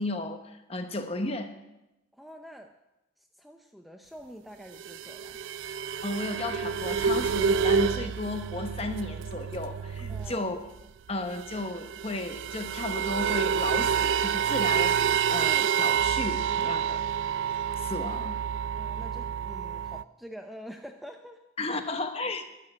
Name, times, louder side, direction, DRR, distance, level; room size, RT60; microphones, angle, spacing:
voice 1, 0.0-1.5 6.0-10.6 11.1-17.0 17.8-18.4 21.6-22.5, left 2 dB, 30° left, 7 dB, 1.0 m, -34 dB
voice 2, 2.1-2.7 3.2-5.4 10.1-10.5 18.8-21.4, equal, ahead, 4 dB, 0.5 m, -46 dB
sound 1, 4.7-10.5 10.8-10.9 11.1-20.0, right 7 dB, 70° right, 0.3 m, -28 dB
12.5 x 6.6 x 9.8 m, 0.96 s
head